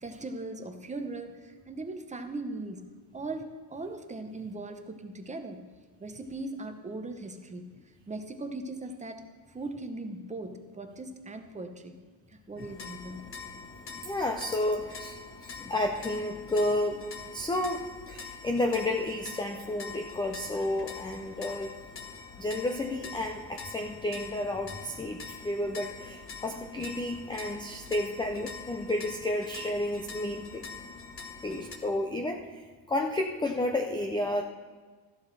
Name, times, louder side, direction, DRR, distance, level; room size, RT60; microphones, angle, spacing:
voice 1, 0.0-2.9 3.1-5.7 6.0-7.7 8.1-11.9 12.3-13.3, right 2 dB, 15° right, 6 dB, 0.8 m, -39 dB
sound 1, 12.6-31.8, left 4 dB, 30° left, 1.1 m, -44 dB
voice 2, 14.0-17.0 17.3-21.7 22.4-30.7 31.4-34.4, left 1 dB, 10° left, 4 dB, 0.4 m, -31 dB
13.5 x 11.5 x 3.3 m, 1.4 s
cardioid pair, 135°, 46 cm